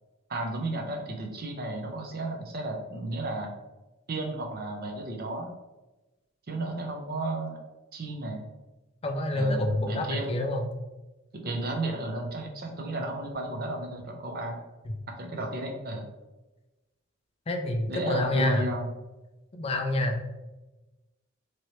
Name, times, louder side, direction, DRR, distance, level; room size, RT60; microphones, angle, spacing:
voice 1, 0.3-3.5 4.1-5.5 6.5-7.6 7.9-8.4 9.3-10.4 11.4-14.6 15.2-16.1 17.9-18.9, right 2 dB, 45° right, 2 dB, 0.6 m, -33 dB
voice 2, 9.0-10.7 17.5-18.6 19.5-20.4, left 1 dB, 30° left, 4 dB, 0.4 m, -27 dB
3.0 x 2.8 x 3.1 m, 1.1 s
head